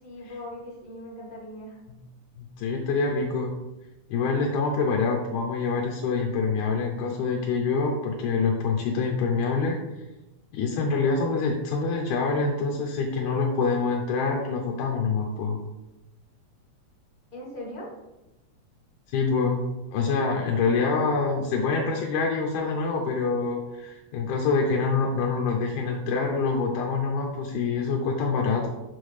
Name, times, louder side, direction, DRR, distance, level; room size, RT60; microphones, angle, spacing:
voice 1, 0.0-1.8 17.3-17.9, left 1 dB, 30° left, -4 dB, 0.9 m, -39 dB
voice 2, 2.4-3.5 4.1-9.8 10.5-15.6 19.1-19.7 19.9-28.7, left 4 dB, 80° left, 0 dB, 2.3 m, -26 dB
6.4 x 6.3 x 3.3 m, 1.0 s
omnidirectional pair, 3.5 m